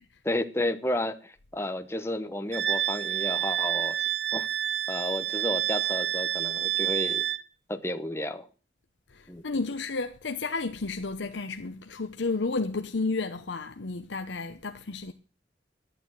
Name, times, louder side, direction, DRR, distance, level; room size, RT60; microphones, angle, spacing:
voice 1, 0.2-4.5 4.9-7.3 7.7-8.5 9.3-9.4, left 1 dB, 15° left, 1.0 m, -32 dB
Wind instrument woodwind instrument, 2.5-7.4, right 12 dB, 75° right, 0.9 m, -28 dB
voice 2, 9.1-15.1, left 3 dB, 80° left, 0.8 m, -32 dB
12.0 x 9.1 x 7.7 m
head